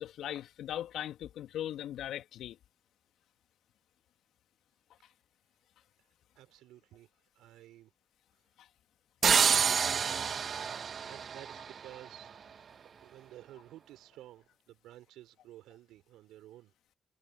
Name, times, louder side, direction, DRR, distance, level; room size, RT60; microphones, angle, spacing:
voice 1, 0.0-2.6 8.6-8.7, left 11 dB, 70° left, 2.3 m, -39 dB
voice 2, 6.4-7.1 7.4-7.9 9.3-10.3 11.1-12.3 13.0-16.7, right 14 dB, 75° right, 4.2 m, -53 dB
sound 1, 9.2-12.1, right 7 dB, 55° right, 1.9 m, -28 dB
hypercardioid pair, 45°, 0 cm